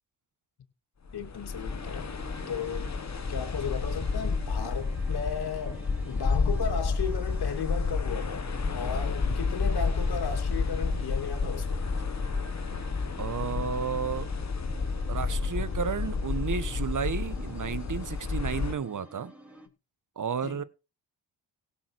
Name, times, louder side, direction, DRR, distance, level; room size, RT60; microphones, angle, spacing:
voice 1, 1.1-2.1 2.5-2.9 3.3-8.5 8.7-11.8 20.4-20.7, left 6 dB, 55° left, 2.8 m, -35 dB
sound 1, 1.1-18.7, left 4 dB, 35° left, 1.9 m, -30 dB
sound 2, 1.5-19.7, right 1 dB, 5° right, 3.5 m, -50 dB
voice 2, 13.2-14.3 15.1-19.3 20.2-20.6, right 6 dB, 40° right, 1.4 m, -32 dB
17.0 x 7.2 x 4.8 m
supercardioid pair, 55°, 45 cm